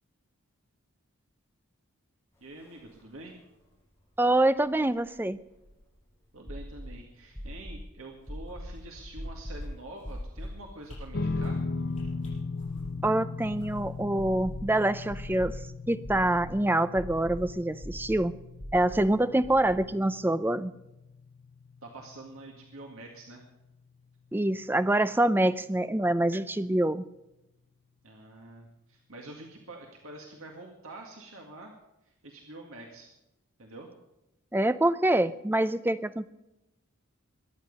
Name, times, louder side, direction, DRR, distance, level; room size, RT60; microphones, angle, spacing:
voice 1, 2.4-3.4 6.3-11.6 19.5-19.6 21.8-23.4 28.0-31.7 32.0-33.1 33.6-33.9, right 2 dB, 75° right, 1 dB, 2.0 m, -46 dB
sound 1, 2.7-2.8 3.0-3.1 4.6-5.9 6.5-6.9 7.4-7.8 8.3-8.7 9.2-9.6 10.0-10.6 11.0-11.8 12.1-12.2 14.2-14.7 15.1-15.6 16.0-16.5 17.0-17.4 17.8-18.2 18.6-19.1 19.4-19.7, equal, 10° left, 4.7 m, -40 dB
voice 2, 4.2-5.4 13.0-15.6 15.9-18.3 18.7-20.7 24.3-27.0 34.5-36.3, right 1 dB, 10° right, 13 dB, 0.4 m, -25 dB
sound 2, 8.2-9.3 9.6-9.7 10.0-10.5 10.8-11.0 11.4-11.6 11.9-13.0 13.4-15.0 15.3-15.4, left 1 dB, 30° left, 6.3 m, -47 dB
sound 3, 11.1-23.7, left 3 dB, 45° left, 0.6 m, -38 dB
22.5 x 9.4 x 5.3 m, 0.92 s
head